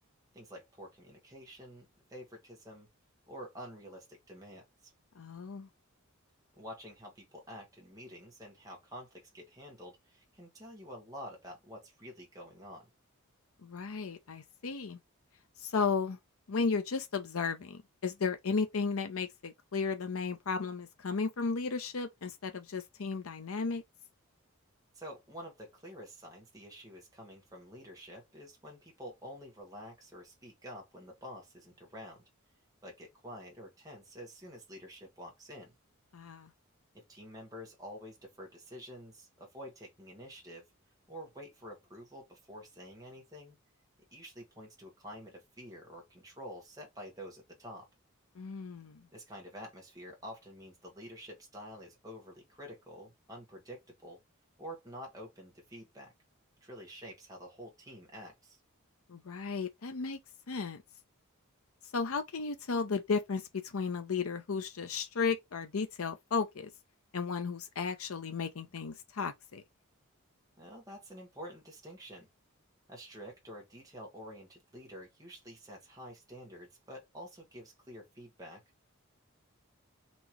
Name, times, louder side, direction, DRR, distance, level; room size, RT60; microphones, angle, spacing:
voice 1, 0.3-2.9 3.3-4.9 6.6-12.9 24.9-32.2 32.8-35.7 36.9-40.7 41.1-43.5 44.1-47.9 49.1-54.2 54.6-56.1 56.6-58.6 70.6-72.3 72.9-78.6, equal, 15° right, 1.4 m, -48 dB
voice 2, 5.2-5.7 13.6-15.0 15.6-16.2 16.5-23.8 36.1-36.5 48.4-49.1 59.1-60.2 60.5-60.8 61.9-66.7 67.1-69.6, left 5 dB, 80° left, 0.6 m, -34 dB
4.3 x 2.9 x 2.9 m
head